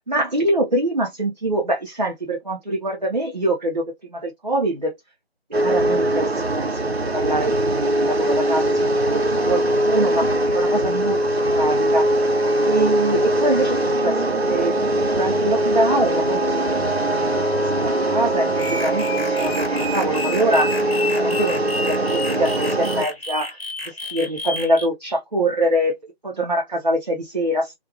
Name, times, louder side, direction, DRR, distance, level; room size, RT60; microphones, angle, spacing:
voice 1, 0.1-3.8 4.1-4.9 5.5-12.1 12.6-16.6 17.4-19.5 19.8-20.7 21.1-23.6 24.1-25.9 26.2-27.7, right 1 dB, 45° right, 0.6 m, -24 dB
sound 1, 5.5-23.1, right 1 dB, 75° right, 0.8 m, -21 dB
Wind instrument woodwind instrument, 15.7-20.2, left 3 dB, 85° left, 0.5 m, -34 dB
sound 2, 18.6-24.9, left 2 dB, 65° left, 0.9 m, -31 dB
2.4 x 2.2 x 2.7 m
figure-of-eight pair, 165°, 32 cm